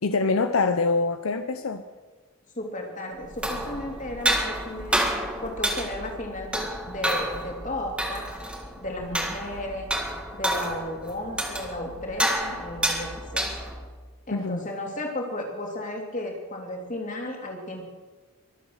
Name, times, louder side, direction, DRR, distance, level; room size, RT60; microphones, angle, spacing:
voice 1, 0.0-1.8 9.0-9.2 14.3-14.7, left 3 dB, 75° left, 9 dB, 0.7 m, -25 dB
voice 2, 2.6-8.3 8.8-9.9 10.3-13.5 14.3-17.9, left 1 dB, 35° left, 1 dB, 3.0 m, -34 dB
sound 1, 3.2-13.9, right 1 dB, 5° right, 1.7 m, -30 dB
23.0 x 8.3 x 6.5 m, 1.3 s
head